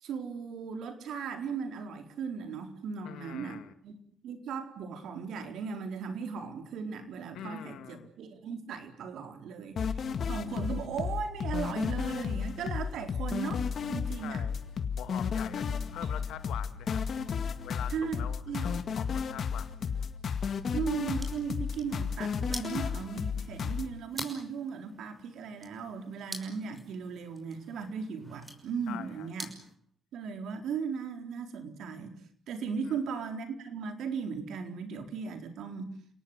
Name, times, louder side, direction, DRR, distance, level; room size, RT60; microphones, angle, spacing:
voice 1, 0.0-3.9 4.2-9.9 10.3-14.4 16.0-16.1 17.9-18.8 20.7-29.5 30.1-32.2 32.5-35.9, right 6 dB, 75° right, 6 dB, 4.1 m, -37 dB
voice 2, 3.0-3.7 7.3-8.1 14.2-14.6 15.0-17.0 17.6-20.2 28.9-29.3 32.8-33.0, left 11 dB, 85° left, 11 dB, 2.0 m, -44 dB
sound 1, 9.8-23.9, left 6 dB, 55° left, 2.1 m, -33 dB
sound 2, 20.9-29.7, equal, 10° right, 5.9 m, -47 dB
29.5 x 18.5 x 8.0 m, 0.62 s
cardioid pair, 90°, 0 cm